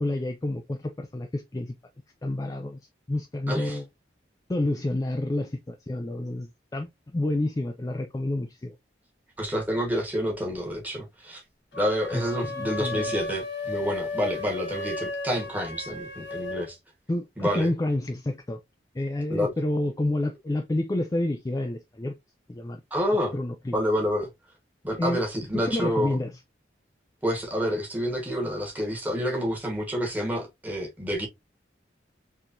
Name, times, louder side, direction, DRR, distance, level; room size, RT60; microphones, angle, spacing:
voice 1, 0.0-1.8 2.2-2.8 3.1-3.8 4.5-6.9 7.1-8.7 12.1-12.2 12.6-13.0 17.1-18.6 18.9-22.1 22.5-22.8 23.3-23.8 25.0-25.2 25.5-26.3, left 1 dB, 20° left, 0.3 m, -29 dB
voice 2, 3.5-3.8 9.4-11.4 11.7-16.8 17.4-17.7 19.3-19.5 22.9-23.3 23.7-24.3 24.8-26.1 27.2-31.3, equal, 10° right, 1.3 m, -28 dB
sound 1, 11.7-16.7, left 3 dB, 80° left, 1.3 m, -34 dB
4.1 x 3.1 x 2.6 m
head